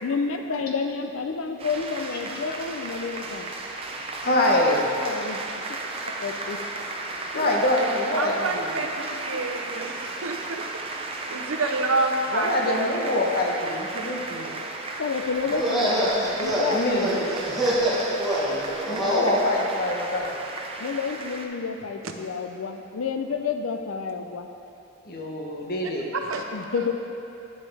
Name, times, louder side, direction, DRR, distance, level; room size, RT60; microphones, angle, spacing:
voice 1, 0.0-3.5 5.0-5.4 6.2-6.6 7.3-7.5 9.0-9.4 15.0-17.3 20.8-24.5 26.5-26.9, left 5 dB, 80° left, 6 dB, 0.5 m, -30 dB
sound 1, 1.6-21.4, right 2 dB, 30° right, 0.6 m, -35 dB
voice 2, 4.2-4.9 7.3-8.7 12.3-14.5 16.7-17.1 18.9-20.4 25.1-26.1, left 1 dB, 50° left, -1 dB, 1.1 m, -24 dB
voice 3, 8.2-12.6 14.0-14.1 16.5-16.6 26.1-26.4, right 3 dB, 85° right, 3 dB, 0.7 m, -28 dB
sound 2, 15.4-19.3, equal, ahead, 1.4 m, -25 dB
10.5 x 7.1 x 3.4 m, 2.8 s
head